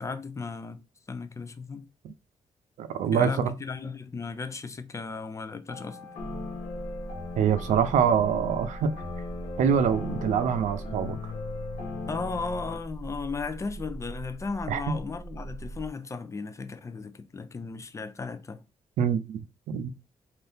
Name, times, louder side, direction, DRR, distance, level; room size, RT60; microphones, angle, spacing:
voice 1, 0.0-1.9 3.1-6.0 12.1-18.6, left 4 dB, 25° left, 0.4 m, -36 dB
voice 2, 2.8-3.5 7.4-9.0 9.6-11.3 14.7-15.0 19.0-19.9, right 7 dB, 85° right, 0.5 m, -25 dB
sound 1, 5.7-12.8, left 4 dB, 90° left, 1.2 m, -38 dB
sound 2, 6.2-15.9, right 3 dB, 30° right, 0.7 m, -41 dB
2.7 x 2.5 x 3.4 m
cardioid pair, 100°, 12 cm